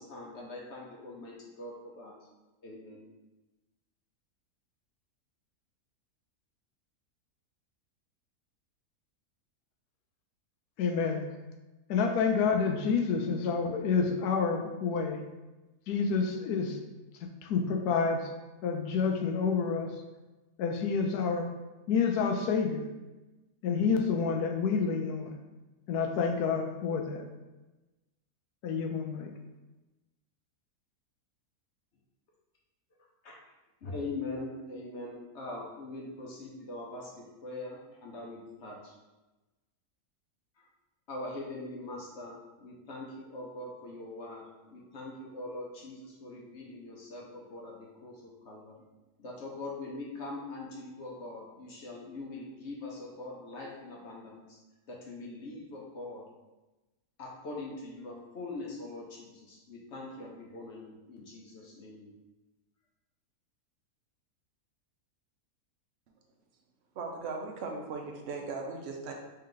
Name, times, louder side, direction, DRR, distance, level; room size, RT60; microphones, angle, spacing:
voice 1, 0.0-2.1 2.6-3.1 33.2-33.4 33.8-38.9 40.6-40.7 41.1-44.4 44.7-48.8 49.2-54.6 54.9-56.2 57.2-62.1, left 2 dB, 55° left, -3 dB, 0.9 m, -42 dB
voice 2, 10.8-11.3 11.9-15.2 15.9-16.8 17.2-18.3 18.6-19.9 20.6-21.5 21.9-22.9 23.6-25.4 25.9-27.2 28.6-29.3, left 5 dB, 80° left, 4 dB, 1.1 m, -28 dB
voice 3, 67.0-69.1, right 4 dB, 60° right, 2 dB, 0.7 m, -38 dB
3.4 x 3.3 x 3.8 m, 1.1 s
omnidirectional pair, 1.6 m